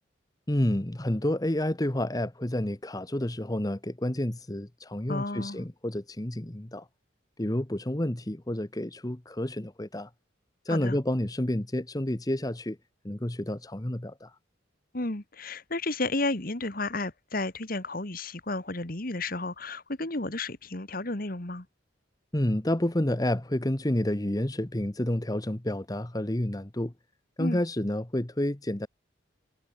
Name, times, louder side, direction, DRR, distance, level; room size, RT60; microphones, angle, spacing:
voice 1, 0.5-6.9 7.4-10.1 10.6-12.8 13.0-14.4 22.3-26.9 27.4-28.9, left 1 dB, 20° left, 1.0 m, -29 dB
voice 2, 5.1-5.6 10.7-11.0 14.9-21.7 27.4-27.6, left 2 dB, 45° left, 1.9 m, -32 dB
head